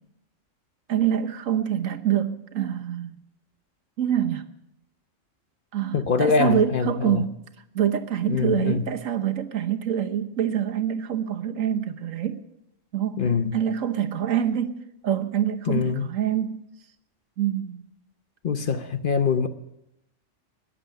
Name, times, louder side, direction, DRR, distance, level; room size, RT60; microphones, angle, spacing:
voice 1, 0.9-3.2 4.0-4.5 5.7-7.4 7.7-12.4 12.9-13.2 13.5-14.8 15.0-16.7 17.4-17.8, right 10 dB, 85° right, 1.4 m, -25 dB
voice 2, 5.9-7.2 8.3-8.9 13.2-13.5 15.7-16.1 18.4-19.5, left 5 dB, 45° left, 0.9 m, -23 dB
21.0 x 7.7 x 7.8 m
omnidirectional pair, 1.3 m